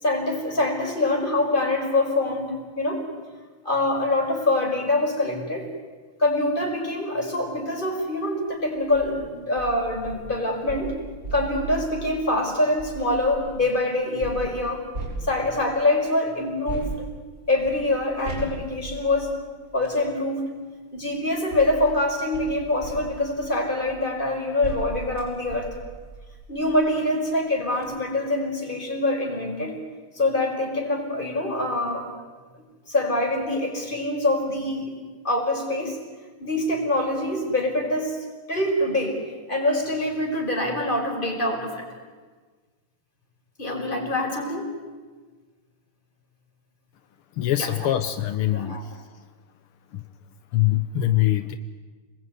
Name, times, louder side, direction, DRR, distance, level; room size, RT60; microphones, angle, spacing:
voice 1, 0.0-3.1 3.6-5.7 6.2-11.0 11.3-14.8 15.2-17.1 17.5-19.3 19.7-20.4 20.9-25.7 26.5-29.8 30.1-32.1 32.5-34.9 35.2-36.0 36.4-39.2 39.5-41.8 43.6-44.7 47.6-47.7 48.5-48.8, left 2 dB, 20° left, 1 dB, 5.3 m, -25 dB
sound 1, 8.7-9.1 9.6-13.6 14.2-15.8 16.7-20.0 21.0-26.9 27.3-27.4 27.7-27.9, right 3 dB, 40° right, 7.4 m, -38 dB
voice 2, 47.4-49.0 49.9-50.0 50.5-51.6, left 13 dB, 80° left, 9 dB, 1.9 m, -23 dB
28.0 x 21.0 x 9.5 m, 1.4 s
omnidirectional pair, 2.4 m